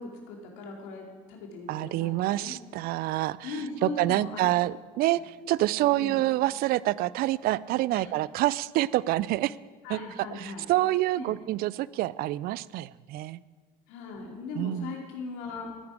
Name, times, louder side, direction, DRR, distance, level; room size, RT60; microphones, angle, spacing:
voice 1, 0.0-2.5 3.4-4.5 5.1-5.6 5.9-6.2 7.9-8.1 9.8-10.7 11.2-11.4 13.9-15.7, left 3 dB, 75° left, 1 dB, 2.5 m, -39 dB
voice 2, 1.7-3.5 3.8-9.6 9.9-13.4 14.6-14.9, right 16 dB, 55° right, 20 dB, 0.4 m, -27 dB
13.5 x 9.5 x 4.8 m, 1.4 s
hypercardioid pair, 80°, 19 cm